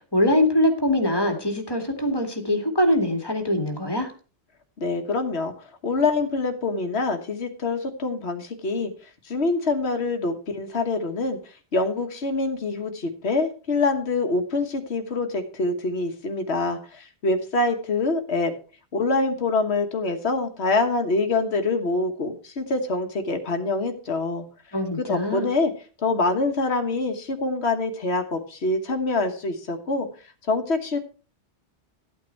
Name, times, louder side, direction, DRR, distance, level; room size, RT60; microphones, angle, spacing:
voice 1, 0.1-4.1 24.7-25.5, left 1 dB, 20° left, 5 dB, 2.2 m, -23 dB
voice 2, 4.8-5.5 5.8-8.9 9.2-11.4 11.7-18.5 18.9-24.5 25.0-25.7 26.0-30.1 30.5-31.0, left 3 dB, 70° left, 6 dB, 1.6 m, -25 dB
13.5 x 8.9 x 4.5 m, 0.38 s
omnidirectional pair, 1.1 m